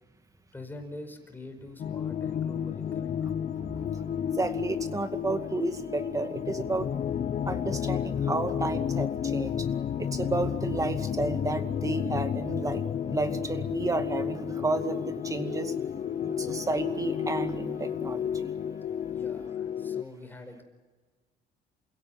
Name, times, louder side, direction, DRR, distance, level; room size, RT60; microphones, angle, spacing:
voice 1, 0.5-3.3 19.1-20.6, left 2 dB, 10° left, 6 dB, 5.0 m, -45 dB
sound 1, 1.8-20.0, left 8 dB, 45° left, 0.8 m, -32 dB
voice 2, 3.3-6.9 7.4-9.7 10.0-15.7 16.2-18.5, right 2 dB, 20° right, 7 dB, 2.3 m, -32 dB
28.5 x 17.0 x 9.2 m, 1.4 s
cardioid pair, 110°, 17 cm